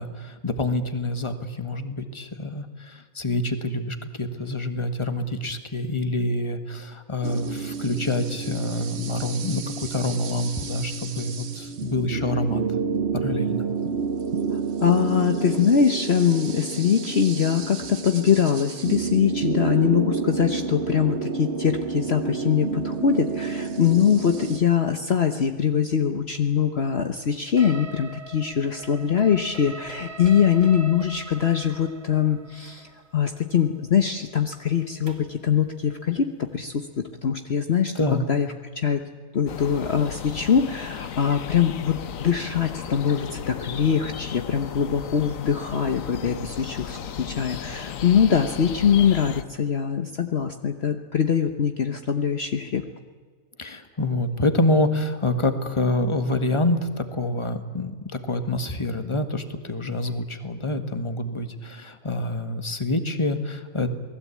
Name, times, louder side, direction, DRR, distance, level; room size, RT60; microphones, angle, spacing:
voice 1, 0.0-12.6 13.1-13.6 38.0-38.3 53.6-63.9, left 2 dB, 20° left, 8 dB, 1.7 m, -27 dB
sound 1, 7.2-24.6, right 5 dB, 55° right, 1.3 m, -30 dB
voice 2, 14.5-37.9 38.3-38.5 38.8-39.0 39.3-52.8, left 8 dB, 50° left, 6 dB, 1.3 m, -23 dB
sound 2, 27.6-35.4, right 3 dB, 70° right, 3.2 m, -41 dB
sound 3, 39.5-49.4, left 8 dB, 75° left, 1.4 m, -35 dB
28.5 x 20.0 x 8.5 m, 1.5 s
omnidirectional pair, 1.4 m